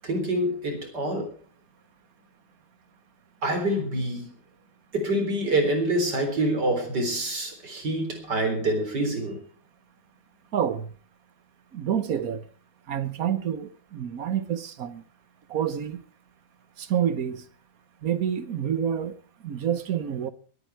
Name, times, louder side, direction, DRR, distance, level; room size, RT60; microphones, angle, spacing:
voice 1, 0.0-1.3 3.4-4.3 4.9-9.4, right 1 dB, 85° right, 4.5 m, -26 dB
voice 2, 10.5-10.9 11.7-12.4 12.9-15.0 15.5-16.0 16.8-17.4 18.0-19.1 19.4-20.3, right 9 dB, 60° right, 1.4 m, -28 dB
22.5 x 9.1 x 4.6 m
omnidirectional pair, 1.8 m